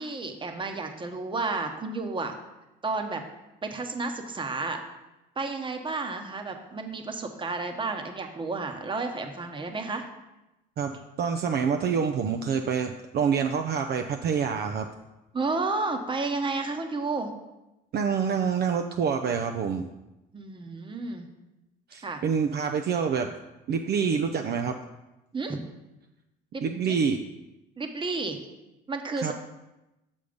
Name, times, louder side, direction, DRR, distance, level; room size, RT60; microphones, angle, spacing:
voice 1, 0.0-2.3 2.8-3.2 3.6-4.8 5.4-10.0 15.3-17.3 20.3-21.3 22.0-22.3 25.3-25.6 26.5-26.9 27.8-28.4 28.9-29.3, right 3 dB, 25° right, 5 dB, 1.0 m, -31 dB
voice 2, 10.8-14.9 17.9-19.9 21.9-23.3 23.7-24.8 26.6-27.2 29.2-29.3, right 6 dB, 50° right, 5 dB, 0.5 m, -27 dB
6.7 x 5.3 x 5.1 m, 0.97 s
supercardioid pair, 90°, 21 cm